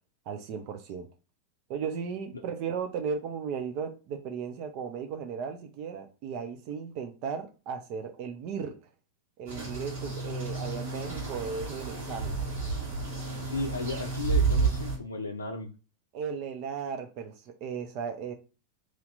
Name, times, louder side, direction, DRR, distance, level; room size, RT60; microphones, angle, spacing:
voice 1, 0.3-1.1 1.7-8.8 9.4-12.4 16.1-18.3, right 6 dB, 45° right, 5 dB, 0.6 m, -36 dB
sound 1, 9.5-15.0, right 4 dB, 65° right, 2.0 m, -31 dB
voice 2, 13.4-15.7, left 3 dB, 75° left, 1 dB, 0.5 m, -35 dB
3.1 x 2.9 x 3.8 m, 0.32 s
figure-of-eight pair, 90°, 0 cm